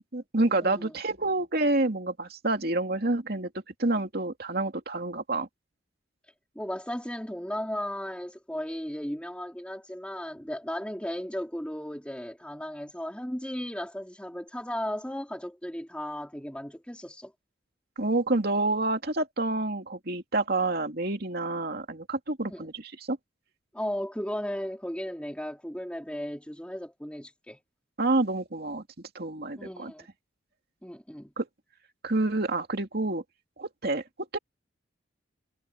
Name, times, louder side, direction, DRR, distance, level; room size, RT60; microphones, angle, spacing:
voice 1, 0.0-3.5 3.8-5.5 18.0-23.2 28.0-28.8 29.1-29.9 31.4-31.5 32.0-33.2 33.6-34.0 34.3-34.4, right 2 dB, 55° right, 2.8 m, -28 dB
voice 2, 0.6-0.9 6.6-17.3 22.5-22.7 23.7-27.6 29.6-30.1 30.8-31.3, equal, 5° left, 3.5 m, -35 dB
head